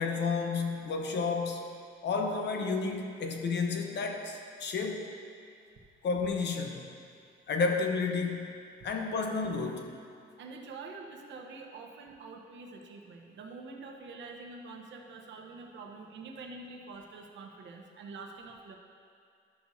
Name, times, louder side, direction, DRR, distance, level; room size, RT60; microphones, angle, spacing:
voice 1, 0.0-1.7 2.0-5.1 6.0-6.9 7.5-8.5 8.8-9.9, left 4 dB, 60° left, 3 dB, 1.0 m, -31 dB
voice 2, 10.4-18.8, right 3 dB, 65° right, 1 dB, 1.0 m, -46 dB
12.0 x 6.4 x 2.7 m, 2.3 s
cardioid pair, 90°, 20 cm